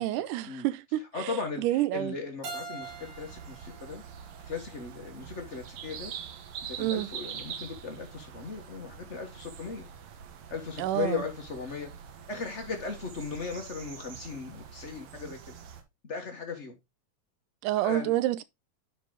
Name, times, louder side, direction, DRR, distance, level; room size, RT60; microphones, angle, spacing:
voice 1, 0.0-2.1 6.8-7.1 10.8-11.2 17.6-18.4, right 15 dB, 90° right, 2.2 m, -29 dB
voice 2, 1.1-4.0 4.4-6.1 6.7-9.9 10.5-11.9 12.3-15.5 16.0-16.7 17.8-18.1, left 5 dB, 85° left, 0.6 m, -37 dB
Keyboard (musical), 2.4-5.3, right 3 dB, 45° right, 2.9 m, -44 dB
sound 1, 2.8-15.8, right 8 dB, 65° right, 2.3 m, -44 dB
10.5 x 4.9 x 3.7 m
omnidirectional pair, 3.6 m